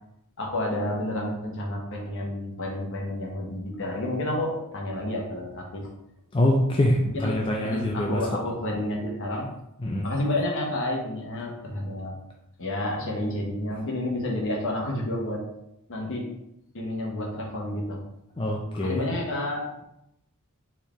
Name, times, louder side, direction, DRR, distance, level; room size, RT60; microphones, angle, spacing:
voice 1, 0.4-5.9 7.1-9.5 10.0-12.1 12.6-15.4 15.9-16.3 16.7-18.0 18.7-19.6, left 1 dB, 60° left, -1 dB, 1.1 m, -30 dB
voice 2, 6.3-8.2 9.8-10.1 18.4-19.0, left 1 dB, 25° left, -1 dB, 0.4 m, -24 dB
4.5 x 3.5 x 3.1 m, 0.83 s
head